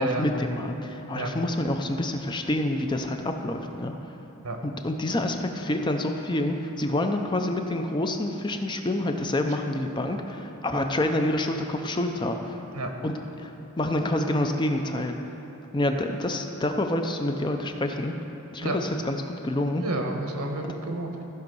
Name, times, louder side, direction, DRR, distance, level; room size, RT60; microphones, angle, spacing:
voice 1, 0.0-3.9 4.6-12.6 13.0-15.2 15.7-18.1 18.5-19.8, left 1 dB, 20° left, 5 dB, 0.5 m, -27 dB
voice 2, 19.8-21.2, right 2 dB, 85° right, 3 dB, 1.2 m, -30 dB
14.5 x 5.2 x 5.4 m, 3.0 s
head